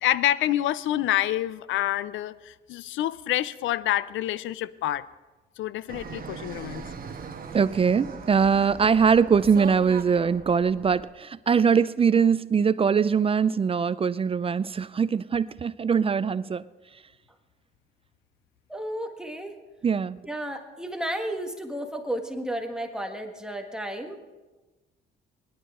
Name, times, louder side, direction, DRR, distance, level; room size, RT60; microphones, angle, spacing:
voice 1, 0.0-5.1 5.6-6.9, left 13 dB, 80° left, 0.5 m, -27 dB
Fixed-wing aircraft airplane, 5.9-11.0, right 5 dB, 45° right, 1.3 m, -40 dB
voice 2, 7.5-16.6 19.8-20.2, right 6 dB, 30° right, 0.4 m, -22 dB
voice 3, 18.7-19.5 20.3-24.2, right 1 dB, 5° right, 1.6 m, -33 dB
20.5 x 11.0 x 3.7 m
cardioid pair, 90°, 20 cm